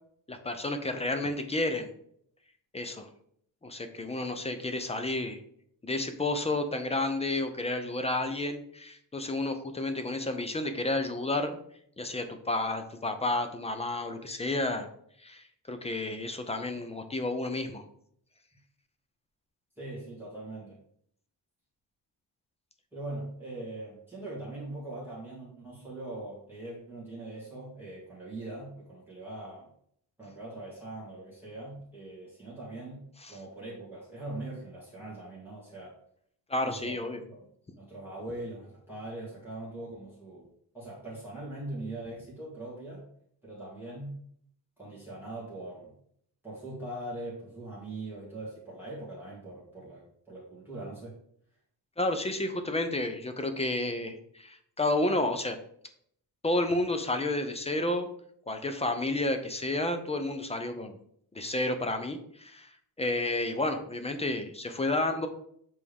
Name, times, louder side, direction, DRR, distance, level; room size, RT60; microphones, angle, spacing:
voice 1, 0.3-1.9 2.7-3.1 3.6-5.4 5.8-11.6 12.0-14.9 15.2-17.9 33.2-33.3 36.5-37.2 52.0-55.6 56.4-58.1 58.5-60.9 61.3-62.7 63.0-65.3, left 2 dB, 15° left, 7 dB, 0.4 m, -31 dB
voice 2, 19.8-20.8 22.9-29.7 30.2-36.0 36.6-37.0 37.3-37.4 37.8-40.5 40.7-43.1 43.4-44.2 44.8-45.9 46.4-51.1, right 2 dB, 5° right, -8 dB, 1.8 m, -41 dB
8.4 x 3.5 x 3.4 m, 0.67 s
wide cardioid pair, 170°, 44 cm